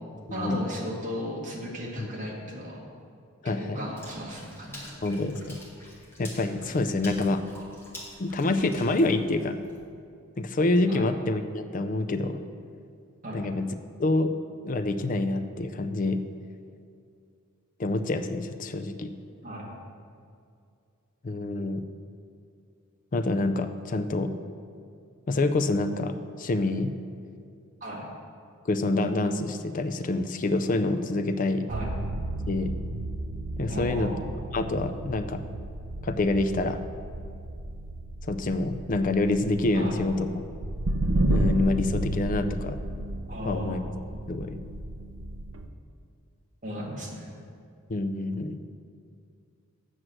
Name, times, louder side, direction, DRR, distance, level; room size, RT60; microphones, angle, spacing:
voice 1, 0.3-2.8 3.4-4.9 10.9-11.1 13.2-13.4 19.4-19.7 27.8-28.1 31.7-31.9 33.7-34.3 39.7-40.1 43.3-43.8 46.6-47.3, equal, 35° right, -3 dB, 1.8 m, -35 dB
voice 2, 3.4-3.8 5.0-5.6 6.2-7.4 8.2-9.6 10.4-12.4 13.3-13.7 14.0-14.3 14.6-16.2 17.8-19.1 21.2-21.8 23.1-24.3 25.3-26.9 28.7-31.6 32.5-32.8 33.6-34.1 34.5-35.4 36.0-36.8 38.2-40.3 41.3-42.8 43.5-43.8 44.3-44.6 47.9-48.6, left 2 dB, 35° left, 9 dB, 0.4 m, -27 dB
Water / Splash splatter, 4.0-9.8, left 1 dB, 10° left, 1.5 m, -47 dB
sound 1, 31.7-45.7, right 1 dB, 60° right, 0.5 m, -32 dB
8.0 x 6.2 x 7.6 m, 2.4 s
head